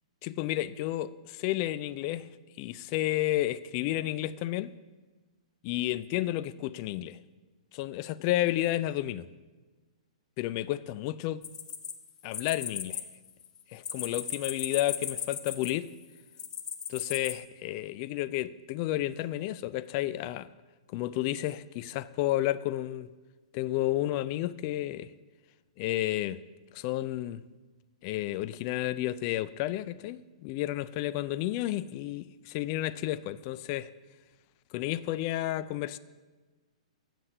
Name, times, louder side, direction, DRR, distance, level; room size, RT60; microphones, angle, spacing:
voice 1, 0.2-2.3 2.6-4.7 5.6-7.2 7.7-9.3 10.4-11.5 12.2-13.0 13.7-15.9 16.9-20.5 20.9-23.1 23.5-25.1 25.8-26.4 26.7-27.4 28.0-33.9 34.7-36.0, left 15 dB, 40° left, 0.3 m, -31 dB
sound 1, 11.4-13.0 13.3-15.9 16.4-17.3, left 8 dB, 20° left, 0.8 m, -36 dB
7.6 x 6.6 x 8.0 m
hypercardioid pair, 125°, 4 cm